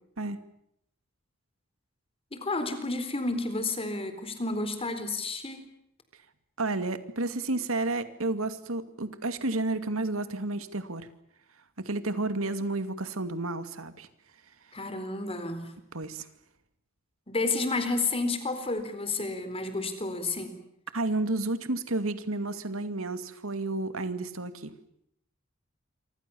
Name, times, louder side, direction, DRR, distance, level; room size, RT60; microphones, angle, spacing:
voice 1, 2.3-5.6 14.7-15.7 17.3-20.6, left 3 dB, 30° left, 10 dB, 4.2 m, -31 dB
voice 2, 6.6-11.1 11.8-14.1 15.9-16.3 20.9-24.7, right 2 dB, 85° right, 10 dB, 2.4 m, -31 dB
28.0 x 25.5 x 7.1 m, 0.77 s
head